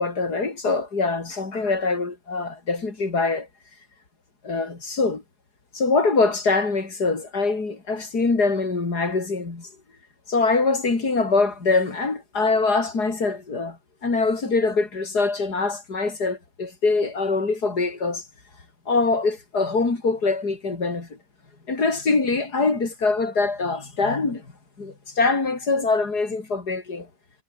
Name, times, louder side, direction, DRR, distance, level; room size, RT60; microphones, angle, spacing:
voice 1, 0.0-3.5 4.4-5.2 5.7-9.7 10.3-18.2 18.9-21.1 21.7-24.5 24.8-27.1, left 3 dB, 75° left, 4.5 m, -23 dB
omnidirectional pair, 1.7 m